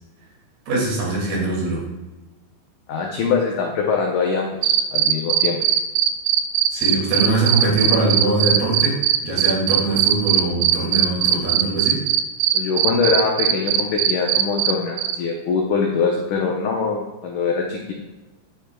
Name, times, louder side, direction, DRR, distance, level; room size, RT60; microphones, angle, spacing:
voice 1, 0.7-1.8 6.7-12.0, right 2 dB, 65° right, -3 dB, 4.2 m, -22 dB
voice 2, 2.9-5.6 12.5-18.0, left 5 dB, 90° left, 0 dB, 1.7 m, -23 dB
sound 1, 4.6-14.7 15.0-15.2, right 12 dB, 85° right, 2.1 m, -18 dB
10.0 x 10.0 x 2.3 m, 1.1 s
omnidirectional pair, 4.8 m